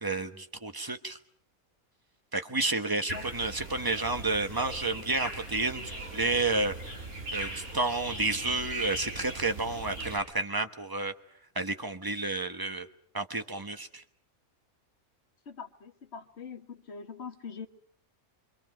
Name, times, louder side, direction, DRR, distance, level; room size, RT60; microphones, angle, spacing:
voice 1, 0.0-1.2 2.3-6.7 7.3-11.1 11.5-12.9 13.1-14.0, right 3 dB, 15° right, 8 dB, 1.1 m, -30 dB
sound 1, 3.1-10.2, right 2 dB, 55° right, 5.2 m, -39 dB
voice 2, 15.5-17.7, left 6 dB, 50° left, 3 dB, 1.8 m, -43 dB
26.5 x 25.0 x 6.2 m, 0.63 s
omnidirectional pair, 1.5 m